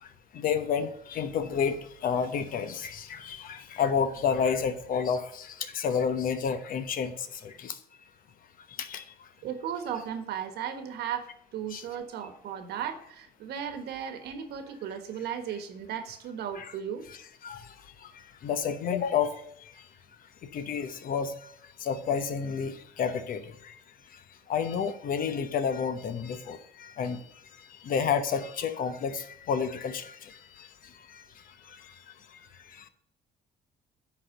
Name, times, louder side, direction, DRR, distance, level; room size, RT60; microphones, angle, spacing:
voice 1, 0.3-7.8 8.8-9.0 11.7-11.8 16.5-16.7 17.1-17.2 17.4-17.7 18.0-18.1 18.4-19.3 20.5-21.5 21.8-23.7 24.5-27.2 27.8-30.7 31.1-31.2 31.7-31.9 32.7-32.9, left 6 dB, 55° left, 10 dB, 1.0 m, -30 dB
voice 2, 9.4-17.0, right 8 dB, 75° right, 7 dB, 1.4 m, -36 dB
9.8 x 4.3 x 6.5 m, 0.68 s
cardioid pair, 110°, 17 cm